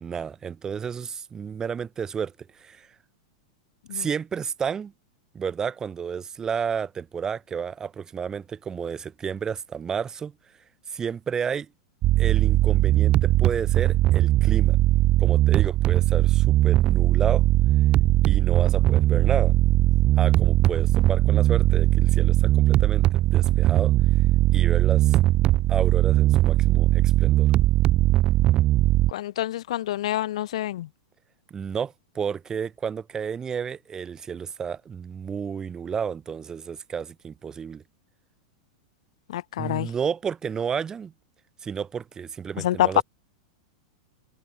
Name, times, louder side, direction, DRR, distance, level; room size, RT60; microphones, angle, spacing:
voice 1, 0.0-2.9 3.9-4.9 5.3-10.3 10.9-11.7 12.2-14.8 15.2-17.5 18.2-19.6 20.2-23.9 24.5-25.2 25.7-27.5 31.5-37.8 39.6-41.1 41.6-43.0, right 7 dB, 20° right, 7.9 m, -31 dB
sound 1, 12.0-29.1, right 15 dB, 35° right, 0.8 m, -20 dB
voice 2, 29.1-30.9 39.3-39.9 42.6-43.0, left 13 dB, 75° left, 2.3 m, -26 dB
supercardioid pair, 135°, 3 cm